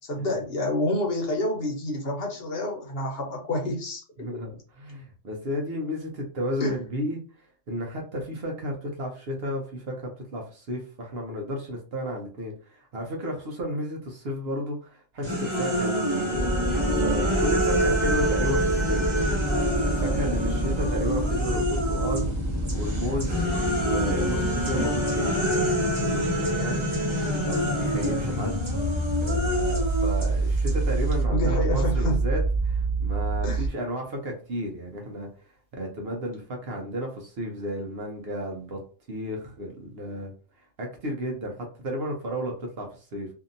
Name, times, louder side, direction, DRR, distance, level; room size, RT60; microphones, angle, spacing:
voice 1, 0.1-4.4 6.6-6.8 31.3-32.2 33.4-33.7, left 1 dB, 55° left, 0 dB, 1.0 m, -28 dB
voice 2, 4.2-16.5 16.9-19.4 19.8-22.3 22.7-23.5 23.8-26.9 27.5-29.0 29.3-35.3 35.7-38.8 39.1-40.3 40.8-43.3, equal, 60° right, 1 dB, 0.9 m, -33 dB
sound 1, 15.2-22.3 22.7-31.2, equal, 30° right, 0.7 m, -27 dB
sound 2, 16.3-33.7, right 1 dB, 10° left, 1.3 m, -27 dB
2.7 x 2.6 x 2.6 m, 0.39 s
omnidirectional pair, 1.3 m